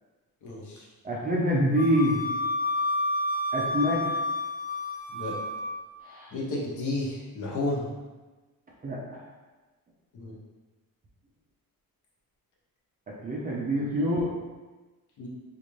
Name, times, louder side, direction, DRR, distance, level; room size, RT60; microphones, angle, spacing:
voice 1, 0.4-0.8 5.1-5.3 6.3-7.9 10.1-10.3 15.2-15.3, left 2 dB, 55° left, -4 dB, 0.9 m, -32 dB
voice 2, 1.0-2.3 3.5-4.0 6.0-6.3 8.8-9.2 13.1-14.3, equal, 25° right, -4 dB, 0.5 m, -26 dB
Wind instrument woodwind instrument, 1.7-5.8, left 1 dB, 25° left, 0.6 m, -30 dB
3.9 x 2.5 x 3.1 m, 1.2 s
cardioid pair, 165°, 37 cm